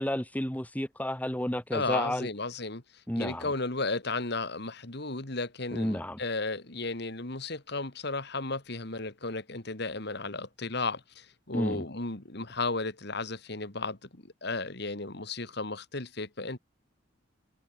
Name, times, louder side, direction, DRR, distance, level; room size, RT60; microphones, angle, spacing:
voice 1, 0.0-2.3 3.1-3.5 5.7-6.2 11.5-11.8, left 1 dB, 10° left, 1.6 m, -31 dB
voice 2, 1.7-2.8 3.2-16.6, left 3 dB, 60° left, 2.8 m, -34 dB
head